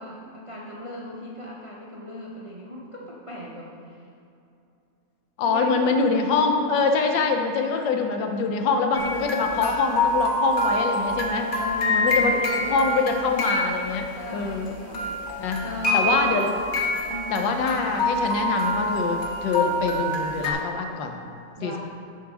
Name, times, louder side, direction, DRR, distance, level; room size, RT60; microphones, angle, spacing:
voice 1, 0.0-4.1 5.4-6.0 11.6-13.2 14.1-15.2 15.6-16.3 17.1-17.6 21.6-21.8, equal, 50° right, -4 dB, 0.4 m, -37 dB
voice 2, 5.4-11.5 11.9-14.7 15.4-15.6 15.9-16.5 17.3-21.2 21.6-21.8, left 4 dB, 90° left, 4 dB, 1.5 m, -24 dB
sound 1, 8.9-14.7 14.9-20.5, left 1 dB, 40° left, 0.8 m, -26 dB
6.8 x 4.9 x 6.1 m, 2.7 s
omnidirectional pair, 1.9 m